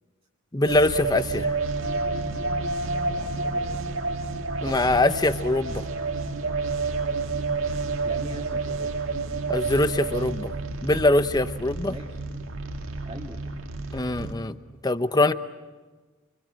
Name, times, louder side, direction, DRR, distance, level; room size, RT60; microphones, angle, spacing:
voice 1, 0.5-1.5 4.6-5.8 9.5-10.5 10.8-11.9 13.9-14.5 14.8-15.3, left 2 dB, 20° left, 11 dB, 0.9 m, -23 dB
sound 1, 0.7-14.3, right 3 dB, 85° right, 1.8 m, -29 dB
voice 2, 3.1-3.8 8.0-9.1 11.7-12.2 13.0-13.4, right 1 dB, 25° right, -2 dB, 1.9 m, -42 dB
29.0 x 25.0 x 7.7 m, 1.3 s
head